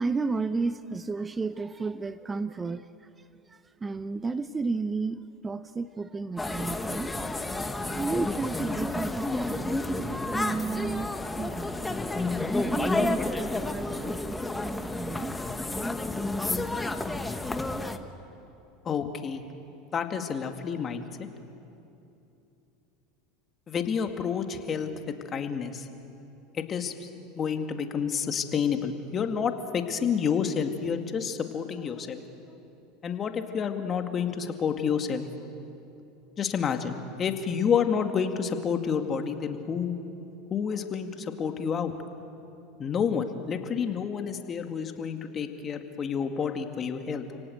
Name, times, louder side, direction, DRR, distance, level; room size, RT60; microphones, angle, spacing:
voice 1, 0.0-7.1 7.9-11.7 12.6-15.3, right 4 dB, 20° right, 13 dB, 0.7 m, -33 dB
sound 1, 6.4-18.0, left 2 dB, 10° left, 1.4 m, -30 dB
voice 2, 18.8-19.4 19.9-21.3 23.7-25.9 26.5-27.1 27.4-32.2 33.0-35.3 36.4-40.0 40.5-41.9 42.8-47.2, left 7 dB, 35° left, 6 dB, 2.2 m, -29 dB
30.0 x 18.0 x 8.0 m, 2.9 s
hypercardioid pair, 95°, 0 cm